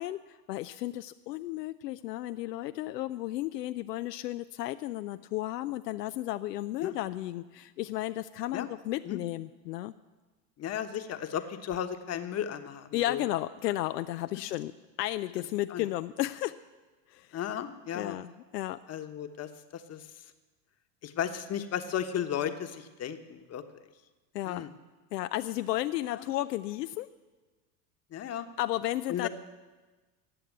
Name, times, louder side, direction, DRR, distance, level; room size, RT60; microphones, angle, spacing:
voice 1, 0.0-9.9 12.9-14.7 15.0-16.5 17.1-17.4 17.9-18.8 24.3-24.6 25.1-27.1 28.6-29.3, left 15 dB, 75° left, 11 dB, 0.6 m, -33 dB
voice 2, 10.6-13.2 15.7-15.8 17.3-18.2 18.9-20.1 21.0-23.6 24.4-24.7 26.1-26.3 28.1-28.5 29.1-29.3, left 9 dB, 30° left, 8 dB, 1.2 m, -35 dB
15.0 x 8.5 x 8.0 m, 1.3 s
hypercardioid pair, 90°, 50 cm